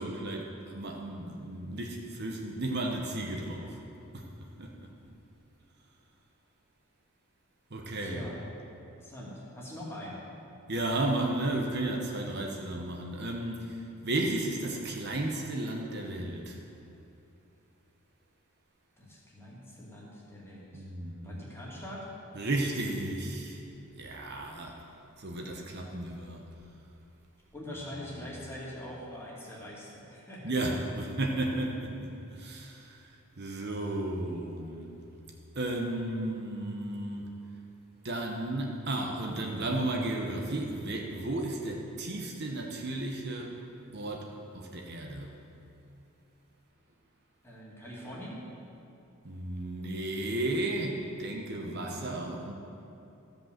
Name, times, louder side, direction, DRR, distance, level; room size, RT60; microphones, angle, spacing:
voice 1, 0.0-3.8 4.1-4.9 7.7-8.2 10.7-16.6 20.7-21.4 22.3-23.6 23.9-24.8 25.2-26.4 28.1-28.3 30.4-33.1 33.4-34.9 35.5-37.2 38.0-43.6 43.9-45.3 49.2-52.5, right 2 dB, 50° right, 1 dB, 1.0 m, -34 dB
voice 2, 8.0-8.4 8.9-10.2 19.0-20.9 21.2-22.1 27.5-30.5 47.4-48.4 51.7-52.3, left 1 dB, 10° left, -5 dB, 2.2 m, -43 dB
14.0 x 5.4 x 7.4 m, 2.9 s
head